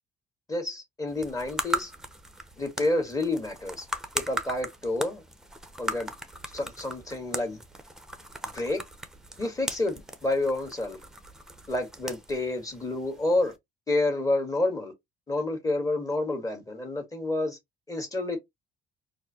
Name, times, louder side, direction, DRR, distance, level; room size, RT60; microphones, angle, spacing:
voice 1, 0.5-1.9 2.6-3.9 4.3-5.2 5.8-6.1 6.5-7.6 8.5-8.8 9.4-11.0 11.7-13.5 13.9-14.9 15.3-17.6 17.9-18.4, left 2 dB, 20° left, 1.6 m, -29 dB
sound 1, 1.1-13.6, right 1 dB, 5° right, 0.7 m, -38 dB
4.2 x 2.7 x 2.8 m
cardioid pair, 110°, 17 cm